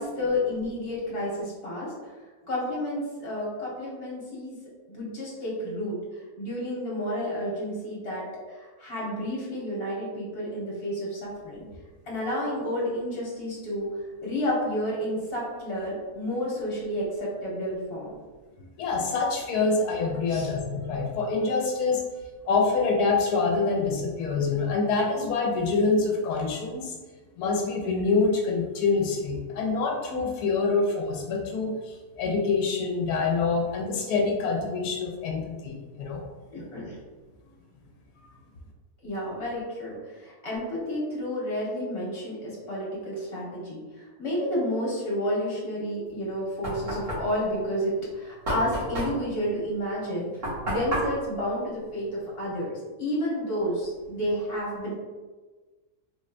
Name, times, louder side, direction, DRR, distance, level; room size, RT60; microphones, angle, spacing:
voice 1, 0.0-2.2 2.5-4.6 4.9-8.2 8.5-11.7 12.0-18.1 20.3-20.5 36.5-37.0 39.0-54.9, equal, 40° left, -6 dB, 1.5 m, -31 dB
voice 2, 18.8-22.0 22.5-26.9 27.4-36.2, left 4 dB, 90° left, 1 dB, 1.1 m, -26 dB
Knock, 46.1-52.6, equal, 75° right, 1.9 m, -33 dB
3.8 x 3.1 x 2.5 m, 1.3 s
omnidirectional pair, 1.6 m